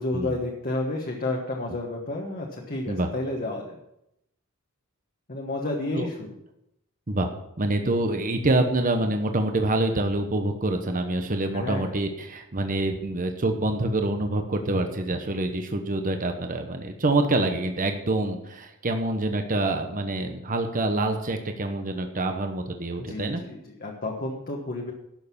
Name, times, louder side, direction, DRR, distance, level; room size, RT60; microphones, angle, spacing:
voice 1, 0.0-3.8 5.3-6.3 11.5-11.9 23.0-24.9, left 2 dB, 40° left, 0 dB, 1.4 m, -31 dB
voice 2, 7.6-23.4, right 2 dB, 40° right, 6 dB, 1.0 m, -26 dB
12.0 x 6.6 x 7.1 m, 0.83 s
head